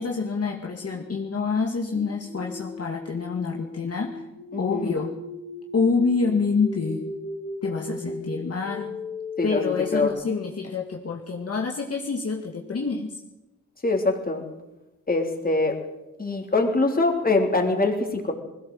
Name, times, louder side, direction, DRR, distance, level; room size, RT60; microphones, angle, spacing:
voice 1, 0.0-4.3 4.6-5.1 5.7-7.1 7.6-8.9 9.4-13.2, left 4 dB, 50° left, 0 dB, 2.2 m, -27 dB
sound 1, 1.9-10.1, left 3 dB, 80° right, 8.0 m, -36 dB
voice 2, 4.5-5.0 9.4-10.1 13.8-14.4 15.1-15.8 16.2-18.3, left 3 dB, 30° left, 2 dB, 3.6 m, -23 dB
21.0 x 16.5 x 7.9 m, 0.96 s
wide cardioid pair, 115°, 32 cm